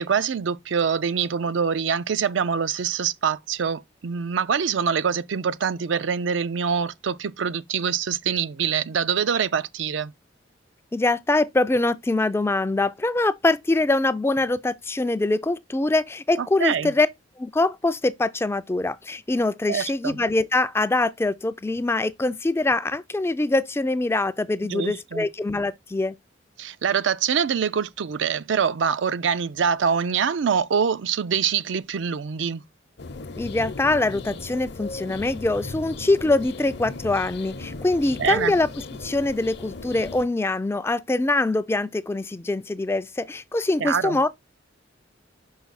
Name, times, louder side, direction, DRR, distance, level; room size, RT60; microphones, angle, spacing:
voice 1, 0.0-10.1 16.4-16.9 19.7-20.2 24.7-25.3 26.6-32.6 38.2-38.5 43.8-44.2, right 7 dB, 75° right, 0.5 m, -25 dB
voice 2, 10.9-17.1 17.4-26.2 33.4-38.7 39.0-44.3, left 2 dB, 15° left, 0.3 m, -23 dB
sound 1, 33.0-40.3, left 3 dB, 60° left, 0.7 m, -37 dB
5.8 x 4.6 x 4.1 m
head